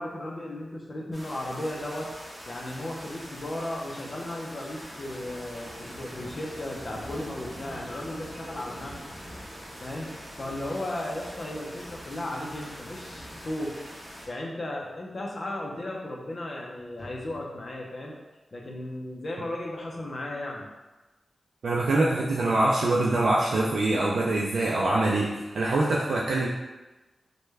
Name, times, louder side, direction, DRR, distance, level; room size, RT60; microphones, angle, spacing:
voice 1, 0.0-2.1 2.4-9.2 9.8-13.8 14.3-18.1 18.5-20.7, left 1 dB, 45° left, -1 dB, 0.5 m, -35 dB
sound 1, 1.1-14.3, equal, 5° left, 1.1 m, -43 dB
voice 2, 21.6-25.3 25.5-26.5, right 2 dB, 90° right, -4 dB, 0.3 m, -24 dB
3.2 x 2.2 x 3.2 m, 1.1 s
wide cardioid pair, 90°, 0 cm